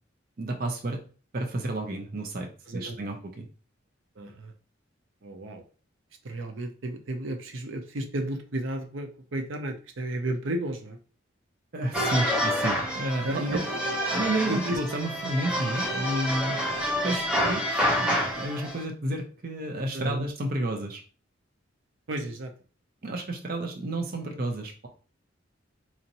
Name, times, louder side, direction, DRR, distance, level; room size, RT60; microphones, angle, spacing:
voice 1, 0.4-1.0 1.3-3.5 11.7-13.6 14.1-16.6 17.0-21.0 23.0-24.9, right 1 dB, 50° right, 2 dB, 0.6 m, -31 dB
voice 2, 2.7-3.0 4.2-4.5 5.2-5.6 6.2-11.0 13.2-13.6 14.5-14.8 17.0-17.3 19.9-20.3 22.1-22.5, right 1 dB, 90° right, 5 dB, 0.7 m, -33 dB
sound 1, 11.9-18.8, equal, 5° right, 0.9 m, -28 dB
4.2 x 2.6 x 2.8 m, 0.38 s
head